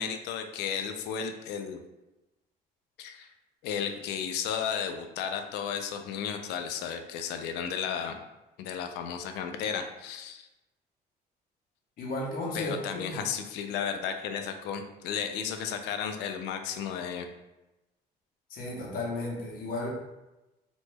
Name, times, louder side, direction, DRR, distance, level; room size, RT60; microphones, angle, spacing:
voice 1, 0.0-1.8 3.0-3.3 3.6-8.2 8.6-10.5 12.5-17.3, left 7 dB, 85° left, 6 dB, 0.4 m, -33 dB
voice 2, 12.0-13.2 18.5-19.9, left 2 dB, 60° left, -2 dB, 0.9 m, -34 dB
3.0 x 2.1 x 3.3 m, 1.0 s
cardioid pair, 110°, 17 cm